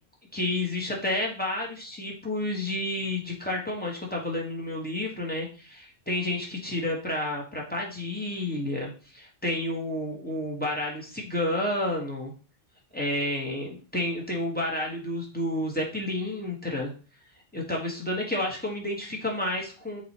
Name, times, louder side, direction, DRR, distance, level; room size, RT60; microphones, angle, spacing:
voice 1, 0.3-12.3 12.9-16.9 17.5-20.0, left 1 dB, 10° left, -2 dB, 1.5 m, -30 dB
7.7 x 2.9 x 4.3 m, 0.37 s
omnidirectional pair, 1.1 m